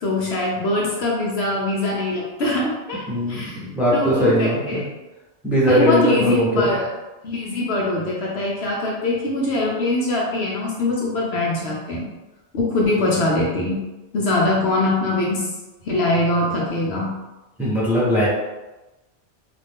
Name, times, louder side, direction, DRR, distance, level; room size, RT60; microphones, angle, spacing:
voice 1, 0.0-3.6 3.9-4.8 5.7-6.9 7.2-12.1 12.5-13.8 14.1-15.5 15.8-17.1, left 2 dB, 65° left, -3 dB, 0.8 m, -23 dB
voice 2, 3.1-4.8 5.4-6.6 17.6-18.3, equal, ahead, -8 dB, 0.9 m, -19 dB
2.5 x 2.5 x 3.5 m, 1.1 s
omnidirectional pair, 1.2 m